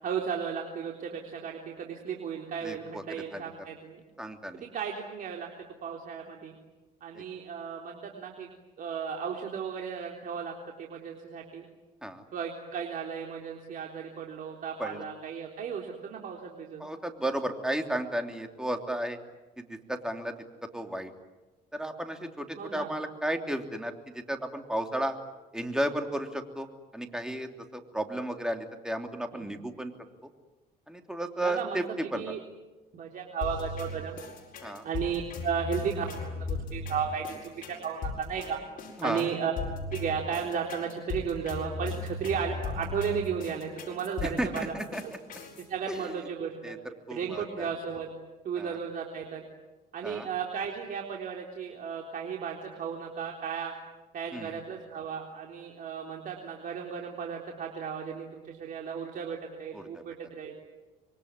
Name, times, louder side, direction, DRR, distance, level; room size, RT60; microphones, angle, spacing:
voice 1, 0.0-4.0 4.5-5.5 5.8-6.5 7.0-11.6 12.3-16.9 22.6-22.9 29.3-29.4 31.4-32.4 32.9-34.2 34.8-38.6 39.0-39.5 39.9-44.7 45.0-45.1 45.6-46.7 47.1-48.1 48.4-49.4 49.9-53.7 54.1-60.5, right 7 dB, 55° right, 1 dB, 3.7 m, -35 dB
voice 2, 2.6-3.0 3.3-3.4 4.2-4.6 7.1-7.2 12.0-12.2 14.8-15.0 16.8-19.2 19.6-20.3 20.7-21.1 21.7-25.2 25.5-26.7 26.9-29.9 30.9-32.3 34.6-34.8 39.0-39.2 44.4-45.0 45.9-46.0 46.6-46.8 47.1-47.7 48.6-48.7 50.0-50.3 54.3-54.5 59.7-60.0, right 1 dB, 5° right, 5 dB, 3.1 m, -33 dB
sound 1, 33.4-45.6, left 3 dB, 55° left, 7.7 m, -37 dB
26.5 x 23.0 x 9.7 m, 1.2 s
cardioid pair, 110°, 17 cm